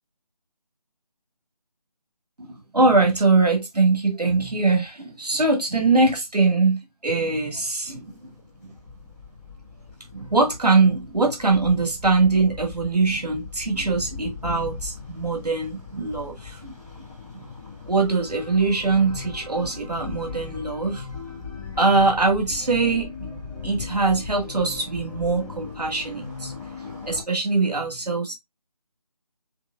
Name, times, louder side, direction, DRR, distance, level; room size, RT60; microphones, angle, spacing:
voice 1, 2.4-8.3 10.1-16.7 17.3-17.4 17.9-21.0 21.8-26.5 27.0-28.3, right 3 dB, 80° right, 1.8 m, -22 dB
sound 1, 7.8-27.2, left 5 dB, ahead, 0.7 m, -39 dB
6.5 x 2.6 x 2.4 m
figure-of-eight pair, 165°, 20 cm